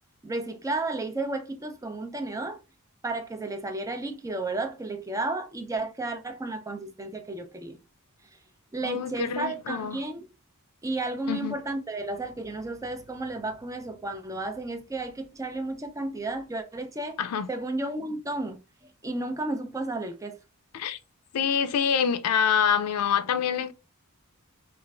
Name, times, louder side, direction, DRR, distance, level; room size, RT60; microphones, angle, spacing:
voice 1, 0.2-2.6 3.0-7.8 8.7-10.2 10.8-17.2 17.5-18.6 19.0-20.4, right 2 dB, 15° right, 0.4 m, -32 dB
voice 2, 8.8-10.0 11.3-11.6 17.2-17.5 20.7-21.0 21.3-23.7, left 7 dB, 80° left, 0.4 m, -26 dB
3.0 x 2.4 x 2.3 m
head